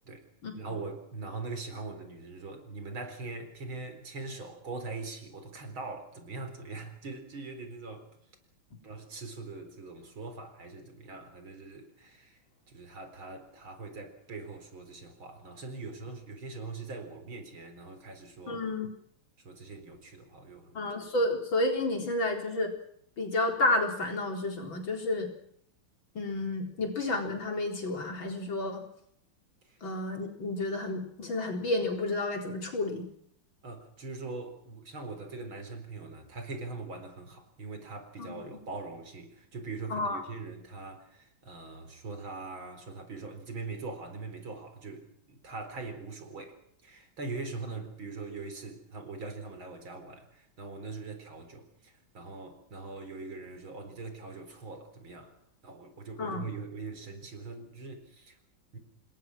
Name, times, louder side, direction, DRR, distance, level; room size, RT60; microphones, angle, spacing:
voice 1, 0.5-8.1 8.8-12.4 12.7-18.6 19.4-20.8 26.8-26.9 29.6-29.8 33.6-55.3 55.6-58.3 58.7-58.8, right 3 dB, 80° right, 5.0 m, -42 dB
voice 2, 18.5-18.9 20.7-22.7 23.2-25.3 26.1-28.8 29.8-33.1 38.2-38.5 39.9-40.2 56.2-56.5, left 2 dB, 70° left, 4.9 m, -31 dB
27.5 x 21.0 x 6.2 m
omnidirectional pair, 2.2 m